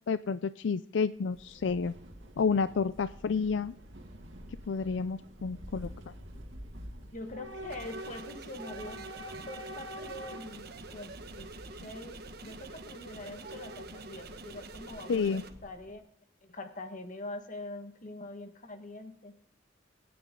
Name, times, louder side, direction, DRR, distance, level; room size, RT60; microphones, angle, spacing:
voice 1, 0.1-1.9 2.4-3.7 4.7-5.9 15.1-15.4, left 5 dB, 75° left, 14 dB, 0.4 m, -30 dB
Train / Subway metro underground, 1.2-16.0, right 1 dB, 90° right, 2.3 m, -47 dB
voice 2, 7.1-9.0 9.5-11.5 11.8-16.0 16.4-19.3, left 2 dB, 45° left, 6 dB, 1.7 m, -44 dB
sound 1, 7.7-15.5, right 3 dB, 55° right, 1.3 m, -47 dB
25.0 x 9.5 x 3.8 m, 0.71 s
head